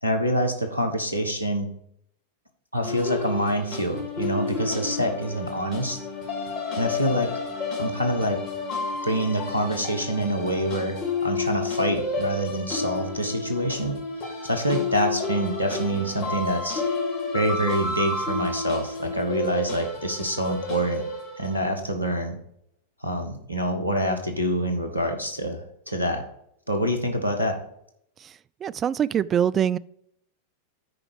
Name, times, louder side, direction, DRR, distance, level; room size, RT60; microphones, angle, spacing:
voice 1, 0.0-1.7 2.7-6.0 6.7-7.3 7.8-8.4 9.0-14.0 14.4-16.8 17.3-21.0 21.4-22.4 23.0-26.2 26.7-27.6, equal, 90° right, 1.3 m, -26 dB
sound 1, 2.8-21.6, left 3 dB, 40° left, 1.9 m, -31 dB
voice 2, 28.6-29.8, right 9 dB, 25° right, 0.3 m, -23 dB
9.6 x 5.1 x 4.7 m
figure-of-eight pair, 90°, 0 cm